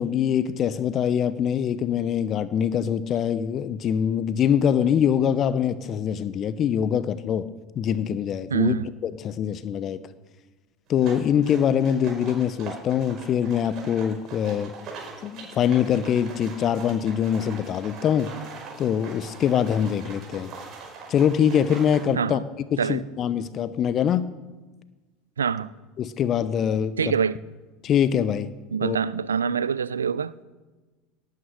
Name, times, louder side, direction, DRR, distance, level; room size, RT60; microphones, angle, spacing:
voice 1, 0.0-7.5 7.7-8.8 9.0-10.0 10.9-14.7 15.2-18.3 18.8-20.5 21.1-22.4 22.7-24.3 26.0-27.2 27.8-28.5 28.8-29.0, left 8 dB, 40° left, 0.8 m, -23 dB
voice 2, 8.5-8.9 22.2-22.4 22.8-23.0 25.4-25.7 27.0-27.4 28.7-30.4, right 6 dB, 85° right, 0.5 m, -25 dB
sound 1, 10.9-22.0, right 4 dB, 45° right, 5.3 m, -42 dB
18.0 x 9.5 x 6.3 m
hypercardioid pair, 80°, 0 cm